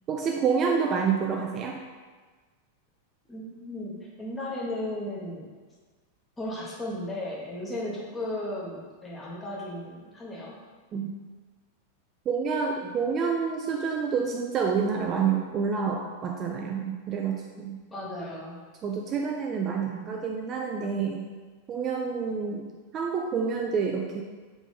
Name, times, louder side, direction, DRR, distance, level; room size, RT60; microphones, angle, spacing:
voice 1, 0.1-1.8 10.9-11.1 12.3-17.8 18.8-21.3 21.7-22.7 22.9-24.2, right 6 dB, 30° right, 0 dB, 0.4 m, -28 dB
voice 2, 3.3-5.5 6.4-10.5 17.9-18.6 19.5-19.8, left 1 dB, 15° left, -4 dB, 1.1 m, -35 dB
3.7 x 3.5 x 3.6 m, 1.4 s
figure-of-eight pair, 90°, 0 cm